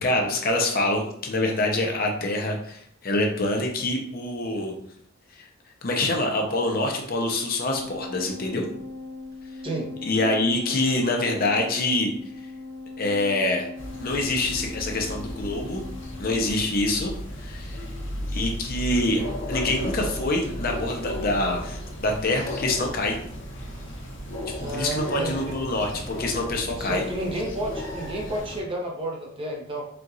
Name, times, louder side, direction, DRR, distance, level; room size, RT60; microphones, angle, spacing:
voice 1, 0.0-4.7 5.8-8.7 10.0-12.1 13.0-13.7 14.0-15.8 16.2-17.1 17.4-17.7 18.3-19.2 19.5-23.2 24.5-27.0, left 2 dB, 50° left, 1 dB, 0.7 m, -25 dB
sound 1, 7.7-16.5, left 3 dB, 65° right, 0.7 m, -40 dB
sound 2, 13.8-28.6, left 1 dB, 70° left, 1.1 m, -34 dB
voice 2, 24.6-25.6 26.7-29.8, right 1 dB, 25° right, -1 dB, 0.9 m, -31 dB
4.5 x 2.5 x 3.9 m, 0.68 s
head